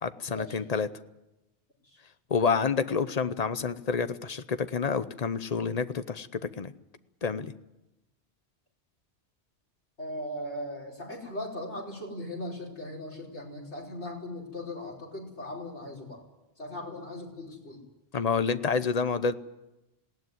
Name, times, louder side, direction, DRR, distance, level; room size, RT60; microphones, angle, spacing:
voice 1, 0.0-0.9 2.3-6.7 7.2-7.5 18.1-19.3, left 5 dB, 40° left, 12 dB, 0.9 m, -28 dB
voice 2, 10.0-16.2 16.6-17.8, left 1 dB, 90° left, 0 dB, 5.2 m, -38 dB
20.0 x 17.5 x 9.5 m, 0.96 s
omnidirectional pair, 1.1 m